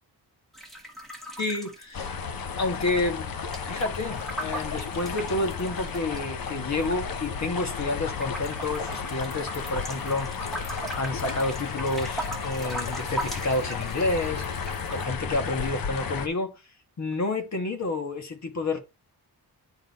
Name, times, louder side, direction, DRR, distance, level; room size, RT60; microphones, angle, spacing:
sound 1, 0.5-2.6 2.8-6.2 6.8-7.8 8.2-15.1, right 1 dB, ahead, 1.3 m, -39 dB
voice 1, 1.4-3.4 3.7-10.3 11.0-14.4 14.9-16.6 17.0-18.8, left 2 dB, 45° left, 1.5 m, -29 dB
sound 2, 1.9-16.3, left 5 dB, 60° left, 0.9 m, -33 dB
10.5 x 3.8 x 4.1 m
wide cardioid pair, 175°, 39 cm